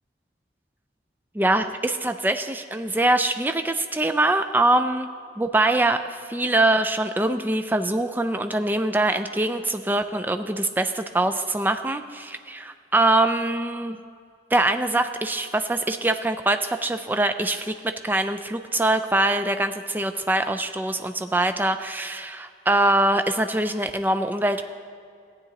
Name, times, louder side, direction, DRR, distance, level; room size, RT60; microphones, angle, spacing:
voice 1, 1.3-14.0 14.5-17.7 18.0-24.6, right 2 dB, 10° right, 8 dB, 0.3 m, -23 dB
15.0 x 8.9 x 2.9 m, 2.2 s
head